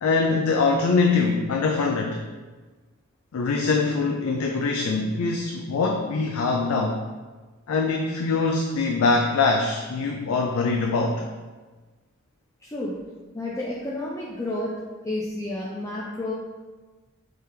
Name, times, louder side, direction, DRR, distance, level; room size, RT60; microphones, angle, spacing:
voice 1, 0.0-2.2 3.3-7.0 7.7-11.2, left 4 dB, 80° left, 2 dB, 0.4 m, -23 dB
voice 2, 12.6-13.0 13.3-14.7 15.0-16.3, left 1 dB, 15° left, -6 dB, 0.4 m, -30 dB
3.4 x 3.3 x 4.6 m, 1.3 s
head